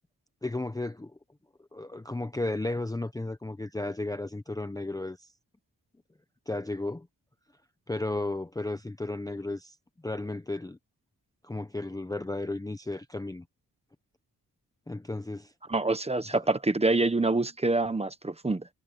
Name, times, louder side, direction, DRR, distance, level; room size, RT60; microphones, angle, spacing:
voice 1, 0.4-1.1 1.7-5.3 6.5-7.1 7.9-9.8 10.0-10.8 11.4-13.4 14.9-15.5, left 2 dB, 10° left, 0.7 m, -34 dB
voice 2, 15.7-18.7, right 2 dB, 15° right, 1.0 m, -26 dB
wide cardioid pair, 160°, 36 cm